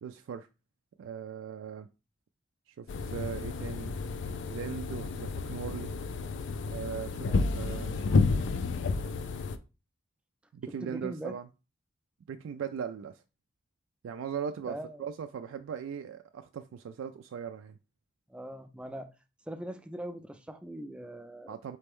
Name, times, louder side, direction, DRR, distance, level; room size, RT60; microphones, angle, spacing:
voice 1, 0.0-0.5 1.0-1.9 2.7-3.9 4.5-5.9 6.6-8.0 10.5-11.5 12.3-13.2 14.0-17.8 21.5-21.8, right 7 dB, 85° right, 0.3 m, -39 dB
sound 1, 2.9-9.6, left 4 dB, 65° left, 0.4 m, -31 dB
voice 2, 10.8-11.4 14.7-15.1 18.3-19.1 19.5-21.5, right 1 dB, 5° right, 0.3 m, -41 dB
4.2 x 3.4 x 3.5 m
head